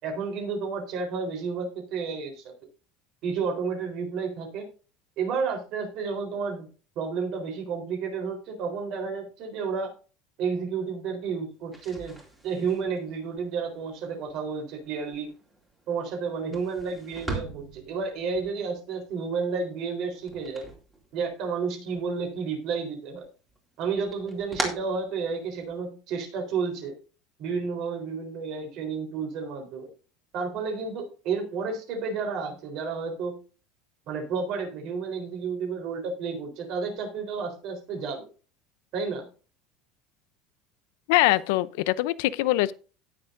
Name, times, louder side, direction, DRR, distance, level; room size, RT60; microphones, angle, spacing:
voice 1, 0.0-2.4 3.2-4.7 5.2-6.7 7.0-9.9 10.4-12.2 12.4-15.3 15.9-20.7 21.1-23.3 23.8-26.9 27.4-29.9 30.3-33.4 34.1-38.3 38.9-39.3, right 5 dB, 45° right, 3.9 m, -31 dB
sound 1, 11.6-21.6 21.9-22.8 23.2-25.8, right 2 dB, 5° right, 2.5 m, -40 dB
voice 2, 41.1-42.7, left 17 dB, 75° left, 0.6 m, -23 dB
18.0 x 6.8 x 2.6 m
cardioid pair, 165°, 0 cm